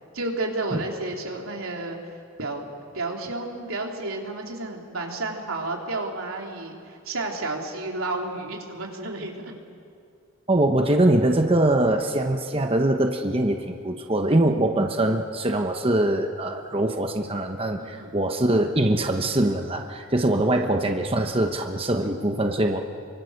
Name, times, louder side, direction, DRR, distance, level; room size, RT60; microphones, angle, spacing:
voice 1, 0.1-2.0 2.4-2.7 2.9-9.5 17.8-18.2 20.5-20.7, right 2 dB, 85° right, 1 dB, 3.3 m, -31 dB
voice 2, 10.5-22.8, right 1 dB, 25° right, 4 dB, 1.0 m, -23 dB
29.0 x 24.0 x 6.6 m, 2.3 s
head